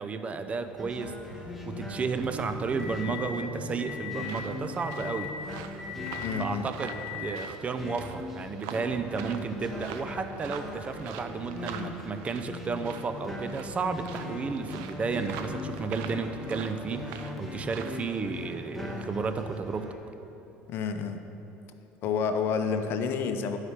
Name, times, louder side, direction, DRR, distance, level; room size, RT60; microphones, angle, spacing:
voice 1, 0.0-5.3 6.4-19.9, right 4 dB, 30° right, 8 dB, 0.5 m, -33 dB
sound 1, 0.7-19.9, left 1 dB, ahead, 1.3 m, -40 dB
sound 2, 1.2-3.3 3.8-4.3 4.8-5.3 5.8-6.3 6.8-7.3, left 8 dB, 20° left, 1.6 m, -40 dB
sound 3, 4.2-18.1, right 7 dB, 80° right, 0.6 m, -45 dB
voice 2, 6.2-6.7 20.7-21.2 22.0-23.6, left 6 dB, 60° left, 8 dB, 0.7 m, -29 dB
11.5 x 4.9 x 5.8 m, 3.0 s
supercardioid pair, 105°, 4 cm